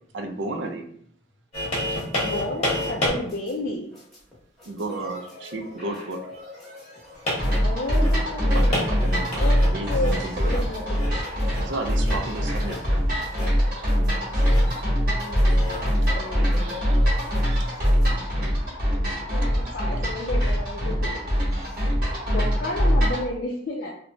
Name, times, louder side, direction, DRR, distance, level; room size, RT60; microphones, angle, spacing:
voice 1, 0.1-0.9 4.6-6.2 8.5-10.6 11.6-13.0 13.7-13.9 14.3-14.8 16.6-17.0 17.4-17.7 18.1-18.3 20.0-20.1, right 2 dB, 70° right, 5 dB, 0.4 m, -34 dB
sound 1, 1.5-3.1 3.7-3.8 7.1-10.2 10.5-10.6 10.9-11.1 11.5-11.7 12.1-12.2 12.5-12.9 13.2-13.7 14.3-14.8 15.2-16.0 16.7-16.8, left 1 dB, 35° left, 0.9 m, -30 dB
sound 2, 1.9-18.1, left 2 dB, 5° left, 0.9 m, -45 dB
voice 2, 2.2-3.9 7.6-11.1 12.0-12.5 15.1-16.9 19.3-21.3 22.3-23.9, left 1 dB, 50° left, -2 dB, 0.3 m, -32 dB
sound 3, 7.4-23.3, equal, 50° right, 1.1 m, -23 dB
voice 3, 18.4-19.5 21.1-22.2, equal, 15° right, -3 dB, 0.6 m, -55 dB
3.0 x 2.1 x 2.6 m, 0.62 s
head